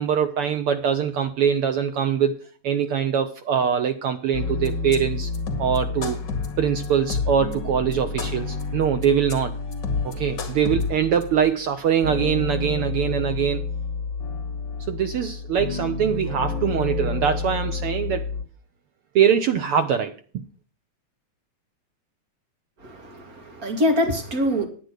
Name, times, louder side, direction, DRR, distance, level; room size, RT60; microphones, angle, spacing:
voice 1, 0.0-2.3 2.6-5.3 5.6-6.2 6.6-9.5 10.0-13.7 14.9-18.3 19.1-20.1, right 8 dB, 75° right, 1.3 m, -23 dB
sound 1, 4.3-18.4, left 4 dB, 40° left, 2.5 m, -29 dB
voice 2, 22.8-24.7, left 1 dB, 30° right, 2.4 m, -24 dB
10.5 x 9.4 x 6.4 m
omnidirectional pair, 3.3 m